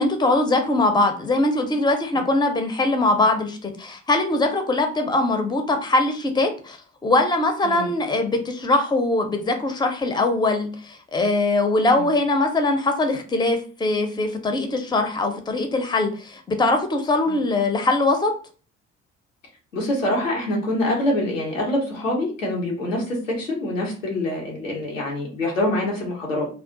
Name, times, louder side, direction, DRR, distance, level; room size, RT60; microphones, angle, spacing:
voice 1, 0.0-6.8 7.0-18.3, left 2 dB, 10° left, 5 dB, 0.6 m, -22 dB
voice 2, 19.7-26.5, left 1 dB, 85° left, -2 dB, 0.8 m, -25 dB
2.3 x 2.3 x 3.7 m, 0.39 s
figure-of-eight pair, 45°, 38 cm